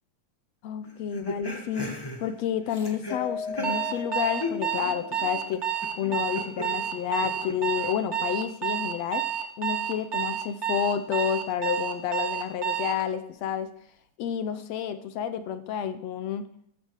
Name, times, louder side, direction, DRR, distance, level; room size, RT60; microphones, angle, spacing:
voice 1, 0.6-1.9 2.2-9.2 9.6-13.7 14.2-16.5, left 9 dB, 70° left, 11 dB, 2.0 m, -30 dB
sound 1, 0.8-4.1 4.4-8.4, left 2 dB, 15° left, 0.8 m, -38 dB
Mallet percussion, 3.1-5.4, left 6 dB, 90° left, 2.4 m, -37 dB
Alarm, 3.6-13.0, right 10 dB, 80° right, 0.6 m, -30 dB
14.0 x 12.5 x 6.4 m, 0.71 s
omnidirectional pair, 3.3 m